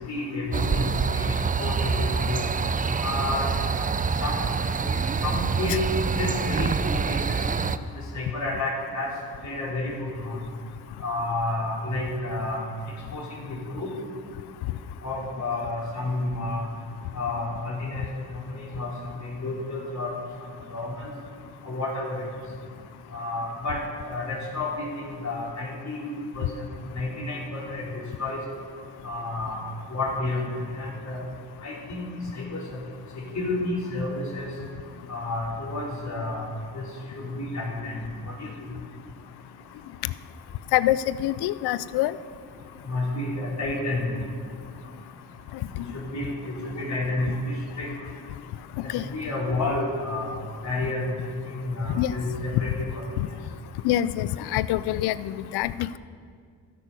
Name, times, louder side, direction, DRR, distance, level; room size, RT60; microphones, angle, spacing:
voice 1, 0.1-2.4 3.0-3.5 4.2-4.4 4.9-5.9 6.2-7.4 7.9-9.1 9.4-10.4 11.0-12.6 13.1-13.9 15.0-16.6 17.1-18.0 18.3-20.1 20.4-21.1 21.6-22.2 23.1-23.8 24.1-27.8 28.2-28.4 29.0-30.4 30.7-31.2 31.6-32.8 33.2-34.5 35.1-36.9 37.1-38.7 42.9-44.1 45.9-47.9 48.8-51.0 51.4-53.0, left 2 dB, 45° left, -4 dB, 3.8 m, -31 dB
sound 1, 0.5-7.8, right 5 dB, 20° right, 0.5 m, -26 dB
voice 2, 40.7-42.2 48.9-49.0 51.9-52.1 53.2-53.3 53.8-56.0, left 13 dB, 85° left, 17 dB, 0.5 m, -25 dB
13.5 x 8.4 x 5.4 m, 2.1 s
supercardioid pair, 60°, 38 cm